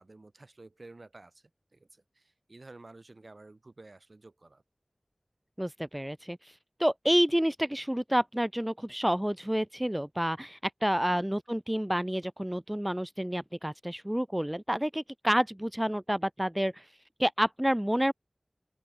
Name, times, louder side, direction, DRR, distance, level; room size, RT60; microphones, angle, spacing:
voice 1, 0.0-4.6 11.1-11.3, right 2 dB, 65° right, 7.6 m, -52 dB
voice 2, 5.6-6.4 6.8-16.8 17.2-18.1, equal, 10° right, 0.3 m, -29 dB
open air
wide cardioid pair, 55°, 0 cm